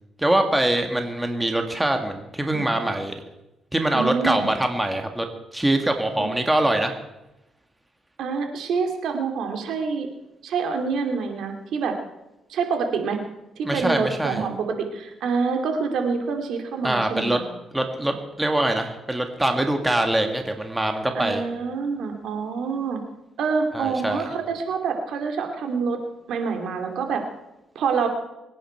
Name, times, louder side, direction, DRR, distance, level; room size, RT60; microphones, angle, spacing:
voice 1, 0.2-3.2 3.7-6.9 13.6-14.5 16.8-17.4 17.7-21.4 23.7-24.3, right 1 dB, 10° right, 4 dB, 1.8 m, -23 dB
voice 2, 3.9-4.5 6.2-6.3 8.2-10.1 10.4-12.0 12.5-13.2 13.6-17.4 21.1-23.0 23.4-26.0 26.3-27.2 27.7-28.1, right 5 dB, 75° right, 4 dB, 2.6 m, -26 dB
23.5 x 10.0 x 4.5 m, 0.94 s
cardioid pair, 90°, 0 cm